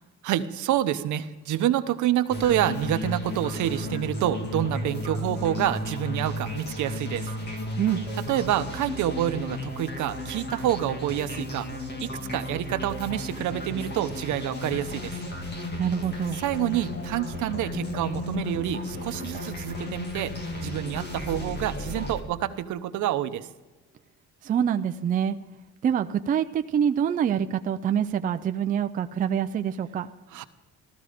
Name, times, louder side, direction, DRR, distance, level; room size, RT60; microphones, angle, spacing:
voice 1, 0.2-7.3 8.2-11.7 12.0-15.1 16.4-20.3 20.6-23.5 30.3-30.4, right 12 dB, 80° right, 10 dB, 0.9 m, -27 dB
sound 1, 2.3-22.2, left 1 dB, 35° left, 1.9 m, -34 dB
voice 2, 15.8-16.4 24.4-25.4 25.8-30.1, right 8 dB, 30° right, 9 dB, 0.4 m, -25 dB
15.0 x 13.0 x 5.0 m, 1.1 s
cardioid pair, 175°, 30 cm